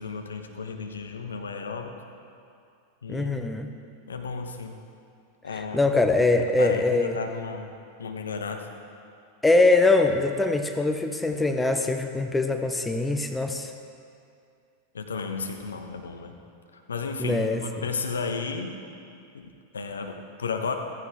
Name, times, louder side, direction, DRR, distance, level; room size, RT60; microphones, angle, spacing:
voice 1, 0.0-1.9 3.0-3.5 4.1-4.8 5.4-5.8 6.6-7.7 8.0-8.6 14.9-16.3 16.7-18.8 19.3-20.7, left 5 dB, 70° left, 5 dB, 1.1 m, -33 dB
voice 2, 3.1-3.7 5.5-7.1 9.4-13.7 17.2-17.6, left 2 dB, 10° left, 6 dB, 0.7 m, -23 dB
15.0 x 14.5 x 3.5 m, 2.4 s
figure-of-eight pair, 90°, 0 cm